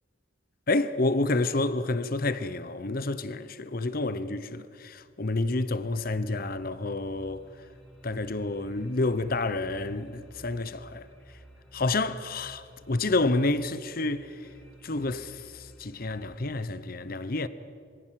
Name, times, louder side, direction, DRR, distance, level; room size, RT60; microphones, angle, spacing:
voice 1, 0.7-7.4 8.0-11.1 11.7-14.5 14.8-17.5, left 2 dB, 50° left, 0.9 m, -29 dB
sound 1, 5.0-16.4, right 1 dB, 10° left, 4.9 m, -53 dB
26.5 x 23.5 x 7.7 m
head